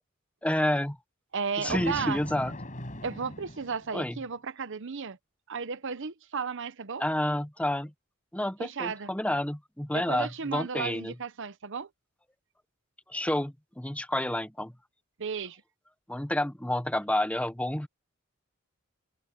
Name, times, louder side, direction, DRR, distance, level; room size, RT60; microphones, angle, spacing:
voice 1, 0.4-1.0 1.6-2.5 3.9-4.2 7.0-7.9 8.3-11.1 13.1-14.7 16.1-17.9, left 1 dB, 5° left, 1.0 m, -29 dB
voice 2, 1.3-2.2 3.0-5.2 5.5-7.0 8.6-9.1 9.9-11.9 15.2-15.6, right 5 dB, 60° right, 0.8 m, -34 dB
Thunder, 1.7-4.2, left 1 dB, 40° left, 5.5 m, -40 dB
head